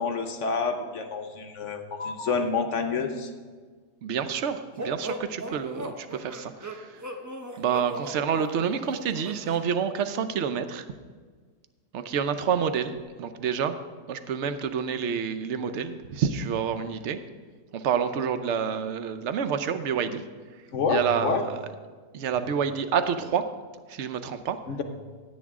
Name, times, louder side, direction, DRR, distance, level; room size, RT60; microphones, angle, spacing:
voice 1, 0.0-3.3 20.7-21.4 24.7-24.8, left 5 dB, 55° left, 6 dB, 0.9 m, -28 dB
voice 2, 4.0-6.9 7.6-10.8 11.9-13.8 14.1-17.2 17.7-20.2 20.9-21.6 22.1-23.4 23.9-24.6, right 7 dB, 60° right, 10 dB, 0.8 m, -28 dB
sound 1, 4.8-9.6, right 1 dB, 20° right, 0.5 m, -38 dB
16.0 x 9.4 x 3.6 m, 1.5 s
omnidirectional pair, 1.7 m